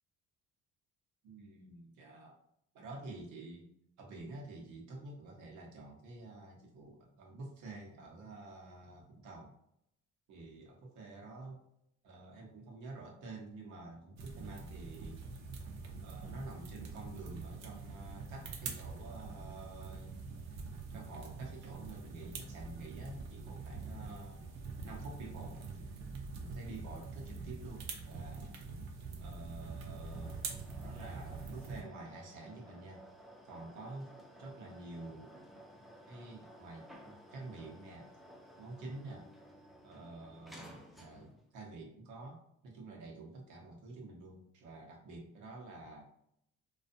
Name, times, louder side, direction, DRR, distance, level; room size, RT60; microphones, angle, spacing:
voice 1, 1.2-2.4 2.7-3.7 4.0-9.5 10.3-11.6 12.0-15.2 16.0-20.2 20.9-24.5 24.8-25.8 26.4-28.5 29.2-30.4 30.8-33.0 33.4-35.3 36.1-38.1 38.6-39.3 39.8-46.0, right 2 dB, 85° right, 0 dB, 0.9 m, -49 dB
sound 1, 14.2-31.8, right 4 dB, 65° right, 0.6 m, -45 dB
sound 2, 29.8-41.5, equal, ahead, 0.3 m, -56 dB
2.5 x 2.4 x 2.5 m, 0.74 s
cardioid pair, 145°, 29 cm